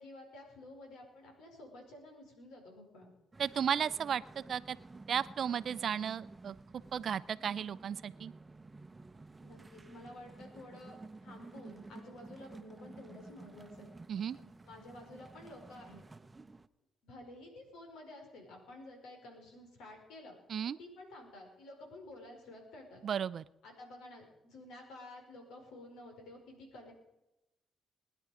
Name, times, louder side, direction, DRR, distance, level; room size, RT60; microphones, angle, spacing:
voice 1, 0.0-3.1 9.4-13.9 14.3-16.0 17.0-20.3 20.6-23.0 23.6-26.9, left 1 dB, 90° left, 2 dB, 4.9 m, -51 dB
sound 1, 3.3-16.7, right 3 dB, 20° right, 0.8 m, -53 dB
voice 2, 3.4-4.8 5.1-6.6 6.9-8.3 14.1-14.4 20.5-20.8 23.0-23.4, right 8 dB, 55° right, 16 dB, 0.5 m, -34 dB
21.0 x 10.5 x 5.0 m, 0.93 s
cardioid pair, 90°, 0 cm